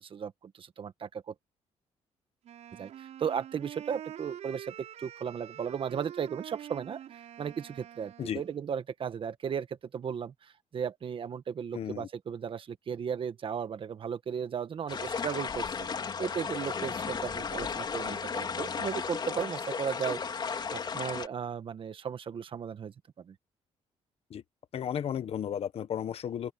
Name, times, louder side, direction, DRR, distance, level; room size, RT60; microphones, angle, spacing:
voice 1, 0.0-1.3 2.8-15.9 16.2-23.3, right 7 dB, 45° right, 1.5 m, -36 dB
Wind instrument woodwind instrument, 2.4-8.6, right 10 dB, 70° right, 7.0 m, -46 dB
voice 2, 11.7-12.1 24.3-24.4 24.7-26.5, left 9 dB, 55° left, 1.3 m, -34 dB
sound 1, 14.9-21.3, left 5 dB, 40° left, 3.5 m, -34 dB
cardioid pair, 120°, 12 cm